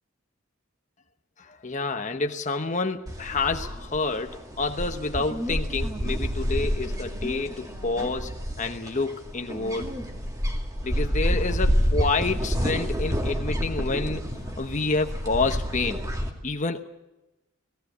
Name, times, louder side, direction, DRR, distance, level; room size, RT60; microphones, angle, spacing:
voice 1, 1.4-9.9 10.8-16.0 16.4-16.9, left 3 dB, 35° left, 6 dB, 1.1 m, -28 dB
sound 1, 3.1-16.3, equal, 15° right, 2.3 m, -29 dB
18.0 x 18.0 x 8.0 m, 0.96 s
head